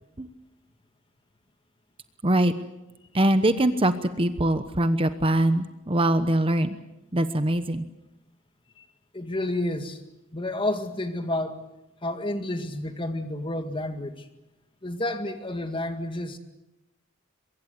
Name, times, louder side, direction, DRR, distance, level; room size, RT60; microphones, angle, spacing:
voice 1, 2.2-2.5 3.1-6.7 7.1-7.8, right 1 dB, 25° right, 1.0 m, -23 dB
voice 2, 9.1-10.0 10.3-11.6 12.0-14.3 14.8-16.4, left 1 dB, 25° left, 2.1 m, -30 dB
23.5 x 23.0 x 8.3 m
head